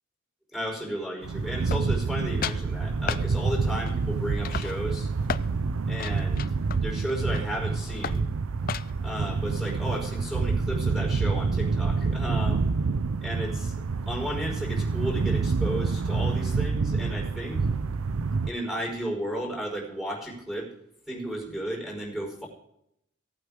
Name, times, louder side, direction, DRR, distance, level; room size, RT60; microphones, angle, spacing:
voice 1, 0.5-5.1 5.9-6.4 6.8-8.3 9.0-12.6 13.2-13.7 14.0-17.6 18.5-20.7 21.1-22.5, equal, ahead, -1 dB, 5.1 m, -33 dB
sound 1, 1.2-18.5, right 4 dB, 75° right, 0.5 m, -27 dB
sound 2, 1.7-2.1 2.4-2.7 3.1-3.3 3.9-4.1 4.4-5.5 6.0-7.6 8.0-8.3 8.7-9.1, left 8 dB, 40° left, 0.4 m, -34 dB
18.5 x 8.8 x 3.7 m, 0.75 s
head